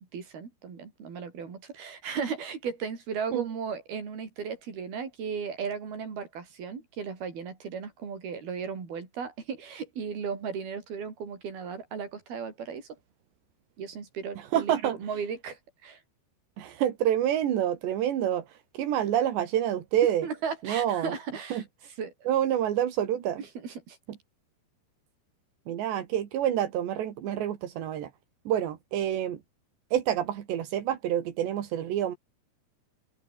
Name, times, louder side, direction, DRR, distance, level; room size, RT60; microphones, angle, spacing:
voice 1, 0.1-12.9 13.8-16.0 20.2-21.6 22.0-22.1 23.4-24.0, right 6 dB, 65° right, 6.8 m, -36 dB
voice 2, 14.4-15.0 16.6-20.3 20.6-21.1 21.5-21.6 22.3-23.4 25.7-28.1 28.5-29.4 29.9-32.2, right 11 dB, 85° right, 4.5 m, -27 dB
open air
omnidirectional pair, 4.9 m